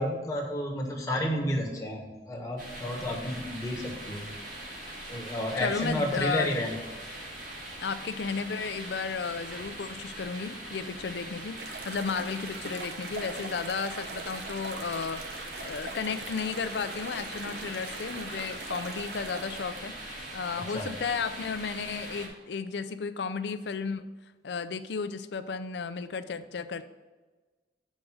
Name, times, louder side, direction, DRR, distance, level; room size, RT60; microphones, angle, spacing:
voice 1, 0.0-4.3 5.1-6.7 20.7-20.9, left 1 dB, 20° left, -2 dB, 1.3 m, -31 dB
sound 1, 2.6-22.3, right 1 dB, 45° right, 2.0 m, -42 dB
voice 2, 5.6-6.5 7.8-15.2 15.6-24.1 24.4-26.8, left 5 dB, 70° left, 11 dB, 0.5 m, -34 dB
sound 2, 11.6-20.0, right 3 dB, 65° right, 0.7 m, -42 dB
7.4 x 5.0 x 6.2 m, 1.3 s
head